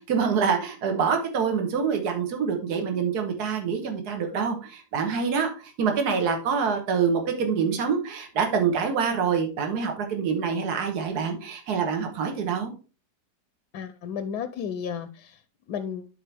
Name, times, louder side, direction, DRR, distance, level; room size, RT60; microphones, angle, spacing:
voice 1, 0.0-12.7, right 6 dB, 75° right, 1.7 m, -26 dB
voice 2, 13.7-15.4 15.7-16.1, left 7 dB, 80° left, 1.2 m, -33 dB
11.0 x 4.4 x 3.3 m
omnidirectional pair, 1.7 m